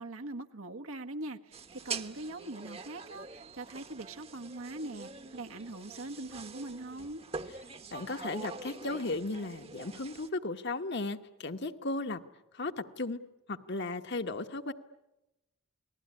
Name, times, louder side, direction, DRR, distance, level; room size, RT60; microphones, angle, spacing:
voice 1, 0.0-7.2, right 2 dB, 85° right, 5 dB, 1.5 m, -42 dB
sound 1, 1.5-10.3, right 4 dB, 30° right, 1.0 m, -44 dB
voice 2, 7.9-12.2 12.5-13.2 13.5-14.7, left 2 dB, 55° left, 7 dB, 1.3 m, -35 dB
29.0 x 20.0 x 9.7 m, 0.94 s
head